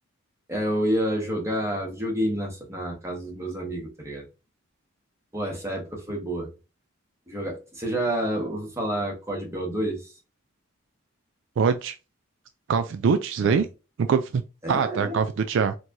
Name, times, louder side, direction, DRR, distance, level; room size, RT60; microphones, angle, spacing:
voice 1, 0.5-4.3 5.3-6.5 7.3-10.1 13.4-13.6 14.6-15.2, right 1 dB, 15° right, 1.3 m, -29 dB
voice 2, 11.6-11.9 12.7-13.7 14.0-14.4 14.7-15.8, right 6 dB, 60° right, 0.3 m, -23 dB
4.4 x 2.9 x 2.6 m
head